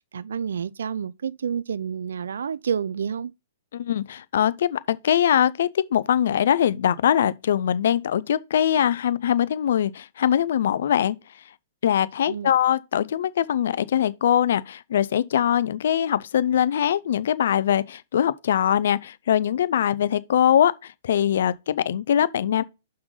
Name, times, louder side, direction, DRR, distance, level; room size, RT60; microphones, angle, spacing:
voice 1, 0.1-3.3 12.3-12.5, right 7 dB, 75° right, 0.4 m, -29 dB
voice 2, 3.7-11.2 11.8-22.6, left 10 dB, 65° left, 0.6 m, -22 dB
6.4 x 5.9 x 3.9 m
hypercardioid pair, 120°, 0 cm